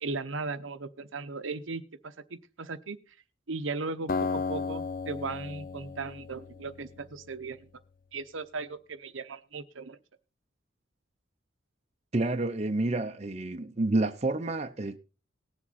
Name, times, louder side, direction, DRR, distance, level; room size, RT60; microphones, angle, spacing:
voice 1, 0.0-2.1 2.6-3.1 3.5-7.6 8.1-10.0, right 3 dB, 70° right, 0.9 m, -37 dB
Acoustic guitar, 4.1-7.3, left 4 dB, 45° left, 0.5 m, -34 dB
voice 2, 12.1-15.0, right 2 dB, 30° right, 0.7 m, -29 dB
18.5 x 7.5 x 4.2 m
head